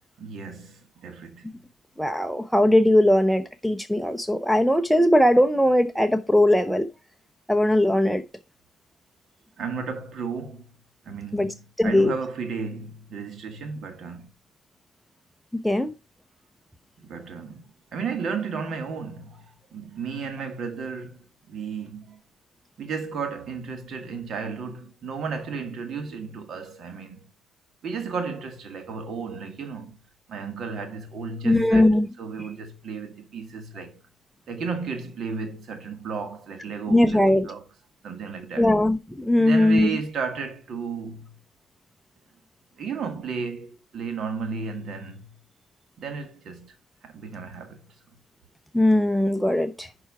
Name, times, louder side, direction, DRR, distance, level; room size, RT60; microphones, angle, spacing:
voice 1, 0.2-1.5 9.6-10.7 11.0-14.3 17.0-17.6 17.9-19.4 19.7-22.2 22.8-27.2 27.8-30.0 30.3-34.0 34.5-37.6 38.0-38.7 39.4-41.3 42.8-45.2 46.0-46.7 47.0-47.8, right 5 dB, 60° right, 1.8 m, -33 dB
voice 2, 2.0-6.9 7.5-8.2 11.3-11.5 11.8-12.1 15.6-15.9 31.4-32.1 36.9-37.5 38.6-40.0 48.7-49.9, left 1 dB, ahead, 0.7 m, -20 dB
6.1 x 4.7 x 5.7 m
cardioid pair, 90°, 0 cm